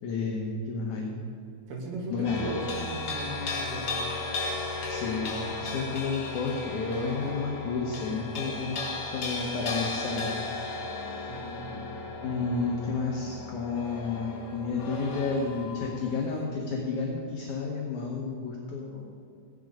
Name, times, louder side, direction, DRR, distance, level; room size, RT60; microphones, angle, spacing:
voice 1, 0.0-1.2 2.1-2.4 4.9-8.8 9.1-10.5 11.1-11.3 12.2-19.1, left 4 dB, 65° left, -1 dB, 2.0 m, -31 dB
voice 2, 1.7-3.9 11.3-11.9, right 1 dB, 65° right, -2 dB, 4.0 m, -37 dB
sound 1, 2.2-16.4, left 3 dB, 50° left, 1.8 m, -35 dB
16.0 x 10.5 x 5.0 m, 2.4 s
omnidirectional pair, 4.9 m